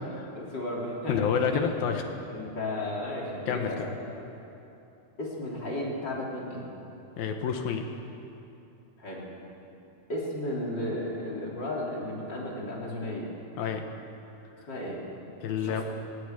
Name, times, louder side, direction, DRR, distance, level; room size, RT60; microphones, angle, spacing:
voice 1, 0.3-1.2 2.3-4.3 5.2-6.6 9.0-9.3 10.1-13.3 14.7-15.0 15.5-15.8, left 1 dB, 30° left, -4 dB, 3.5 m, -34 dB
voice 2, 1.1-2.2 3.5-3.9 7.2-7.8 13.6-13.8 15.4-15.8, left 7 dB, 70° left, 5 dB, 2.8 m, -29 dB
17.0 x 16.5 x 9.6 m, 2.9 s
omnidirectional pair, 4.7 m